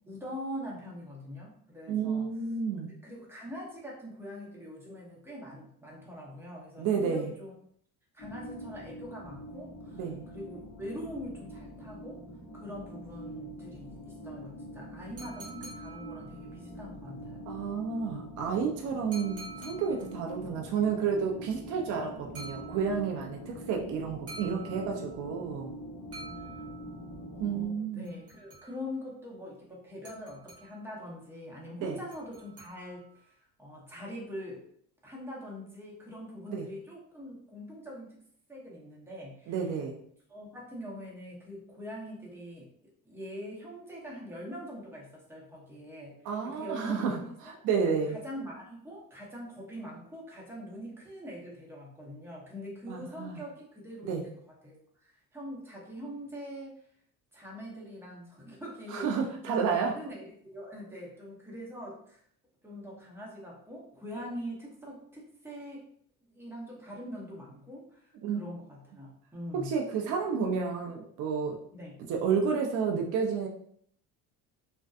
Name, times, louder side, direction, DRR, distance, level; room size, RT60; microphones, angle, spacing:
voice 1, 0.0-2.3 3.0-7.5 8.1-12.2 12.5-17.5 20.3-20.5 24.5-24.6 26.2-26.7 27.3-34.6 35.0-38.2 38.5-39.7 40.3-42.7 43.0-47.6 48.1-54.8 55.0-56.7 57.3-59.1 59.4-62.2 62.6-65.8 66.3-69.7 71.7-72.0, equal, 5° right, -4 dB, 0.9 m, -43 dB
voice 2, 1.9-2.9 6.8-7.3 9.9-10.2 17.5-25.7 27.4-28.1 31.8-31.9 36.5-36.7 39.5-39.9 46.2-48.2 52.9-53.4 54.0-54.2 58.9-59.9 68.2-68.4 69.6-71.6 72.1-73.5, right 6 dB, 55° right, 1 dB, 0.5 m, -31 dB
sound 1, 8.2-27.7, equal, 25° left, 0.8 m, -44 dB
sound 2, 15.2-16.7 19.1-20.3 22.3-23.2 24.3-25.3 26.1-27.1 28.0-29.0 30.0-31.0 32.1-33.2, right 3 dB, 40° right, 1.1 m, -48 dB
2.5 x 2.2 x 2.3 m, 0.65 s
cardioid pair, 100°, 36 cm